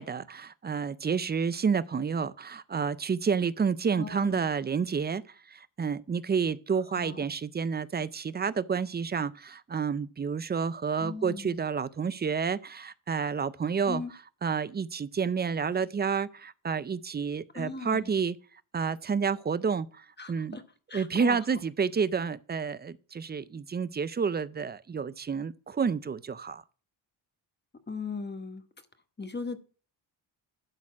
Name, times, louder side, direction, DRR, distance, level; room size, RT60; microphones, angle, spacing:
voice 1, 0.0-5.2 5.5-14.0 14.4-18.4 18.7-20.6 20.9-26.6, right 6 dB, 20° right, 0.4 m, -30 dB
voice 2, 4.0-4.4 6.9-7.2 11.0-11.6 13.9-14.1 17.5-18.1 20.2-20.6 20.9-21.4 27.9-28.6 29.2-29.6, left 4 dB, 20° left, 1.1 m, -38 dB
11.5 x 4.2 x 5.9 m
cardioid pair, 95°, 48 cm